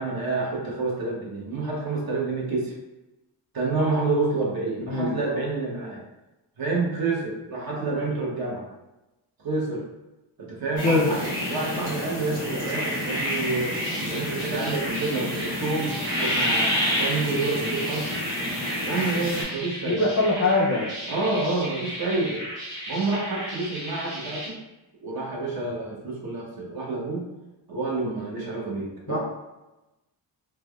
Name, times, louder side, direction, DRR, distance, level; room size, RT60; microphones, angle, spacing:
voice 1, 0.0-2.7 3.5-6.0 6.6-8.7 9.4-9.9 10.4-18.2 18.8-20.0 21.1-22.4 22.9-24.6 25.0-27.3 27.7-29.2, right 3 dB, 55° right, -3 dB, 0.8 m, -28 dB
voice 2, 4.9-5.2 10.8-11.1 19.8-21.0 29.1-29.2, left 2 dB, 30° left, -3 dB, 0.4 m, -22 dB
sound 1, 10.8-19.4, equal, 20° right, 1.1 m, -29 dB
sound 2, 13.4-24.5, equal, 75° right, 1.1 m, -35 dB
3.2 x 2.2 x 2.2 m, 1.0 s
wide cardioid pair, 175°, 44 cm